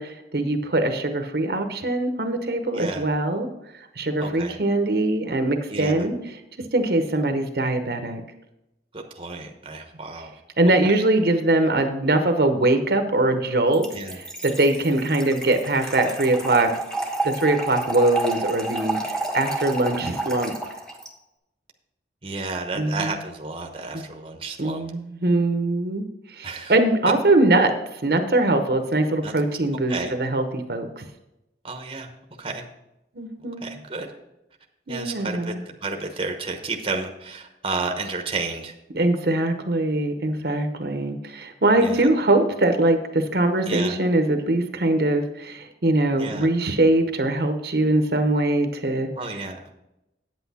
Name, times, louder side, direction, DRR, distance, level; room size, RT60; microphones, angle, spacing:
voice 1, 0.0-3.5 4.0-6.2 6.7-8.2 10.6-16.7 17.2-20.5 22.7-23.2 23.9-24.0 24.6-31.0 33.1-33.6 34.9-35.6 38.9-49.1, right 2 dB, 60° right, 6 dB, 0.9 m, -22 dB
voice 2, 4.2-4.6 5.7-6.1 8.9-10.3 13.9-14.2 22.2-24.8 26.4-26.7 29.2-29.3 29.9-30.1 31.6-32.1 32.4-32.6 33.6-34.1 34.9-35.5 35.8-38.7 41.8-42.1 43.7-44.0 46.2-46.5 49.2-49.6, right 3 dB, 30° right, 3 dB, 0.9 m, -31 dB
Trickle dribble / Fill (with liquid), 13.7-21.1, right 2 dB, 5° left, 1.1 m, -30 dB
8.8 x 8.2 x 4.2 m, 0.89 s
head